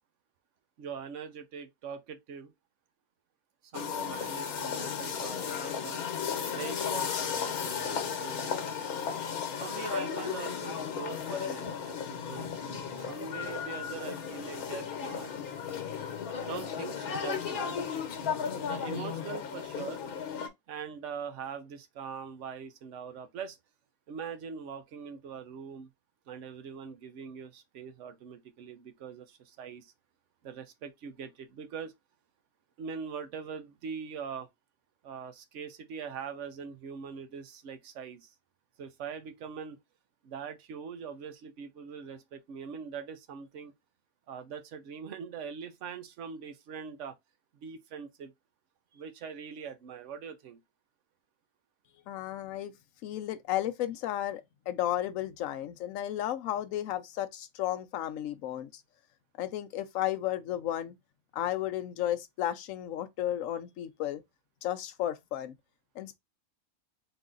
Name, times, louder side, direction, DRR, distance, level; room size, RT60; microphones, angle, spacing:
voice 1, 0.8-2.5 3.7-6.0 6.5-9.0 9.6-15.3 16.4-17.8 18.6-20.0 20.7-23.6 24.1-25.9 26.3-29.9 30.4-31.9 32.8-34.5 35.0-38.3 38.8-39.8 40.2-43.7 44.3-47.2 47.5-48.3 48.9-50.6, right 6 dB, 60° right, 1.0 m, -42 dB
sound 1, 3.7-20.5, left 7 dB, 90° left, 1.3 m, -35 dB
voice 2, 52.1-52.7 53.0-58.8 59.4-60.9 61.3-64.2 64.6-65.6 66.0-66.2, left 12 dB, 70° left, 1.0 m, -33 dB
3.9 x 2.6 x 3.7 m
omnidirectional pair, 1.5 m